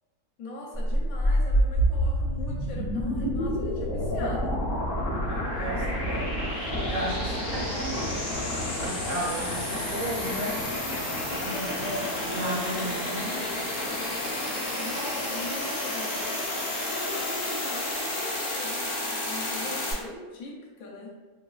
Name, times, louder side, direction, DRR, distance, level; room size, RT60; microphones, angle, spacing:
voice 1, 0.4-4.7 14.8-16.4 16.9-21.1, left 2 dB, 75° left, -2 dB, 1.0 m, -41 dB
sound 1, 0.7-19.9, equal, 50° left, 0.5 m, -29 dB
voice 2, 5.2-11.0 11.3-13.4 19.6-19.8, right 1 dB, 65° right, -6 dB, 0.9 m, -35 dB
3.1 x 2.2 x 2.3 m, 1.3 s
omnidirectional pair, 1.5 m